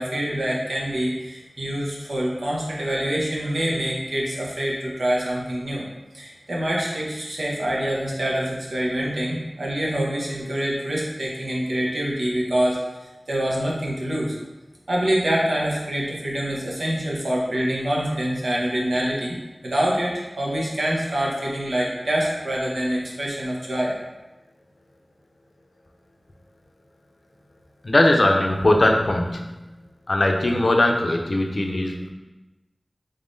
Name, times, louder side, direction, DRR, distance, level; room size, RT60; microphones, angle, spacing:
voice 1, 0.0-5.8 6.1-12.8 13.3-14.4 14.9-19.4 19.6-23.9, right 1 dB, 85° right, -4 dB, 0.9 m, -25 dB
voice 2, 27.8-29.5 30.1-32.1, left 1 dB, 55° left, 2 dB, 0.5 m, -20 dB
3.7 x 3.6 x 2.6 m, 1.1 s
wide cardioid pair, 60°, 0 cm